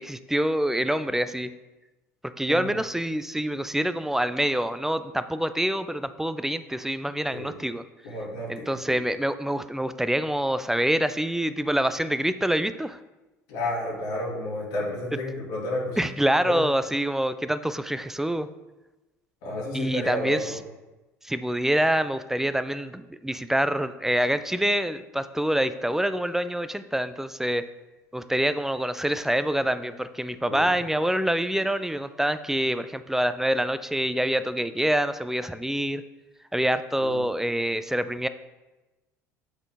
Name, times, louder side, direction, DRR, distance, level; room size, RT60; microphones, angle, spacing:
voice 1, 0.0-1.5 2.4-7.8 8.5-13.0 16.0-18.5 19.7-20.6 21.2-27.6 28.1-36.0 36.5-38.3, right 1 dB, 5° right, 12 dB, 0.3 m, -26 dB
voice 2, 8.0-8.8 13.5-16.0 16.4-16.6 19.4-20.6 30.5-30.7 37.0-37.2, left 1 dB, 65° left, -5 dB, 1.9 m, -31 dB
8.1 x 3.7 x 3.5 m, 1.1 s
hypercardioid pair, 65°, 9 cm